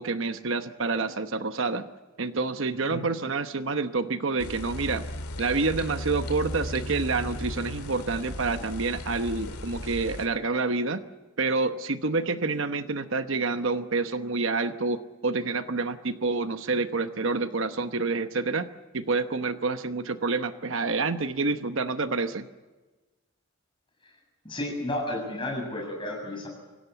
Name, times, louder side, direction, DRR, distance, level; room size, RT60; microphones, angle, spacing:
voice 1, 0.0-1.9 2.2-5.1 5.4-11.0 11.4-18.7 18.9-22.5, right 3 dB, 60° right, 9 dB, 1.0 m, -28 dB
sound 1, 4.4-10.3, left 1 dB, 85° left, 2.3 m, -36 dB
voice 2, 24.4-26.5, left 1 dB, 20° left, 1 dB, 7.2 m, -32 dB
25.0 x 17.0 x 8.1 m, 1.2 s
head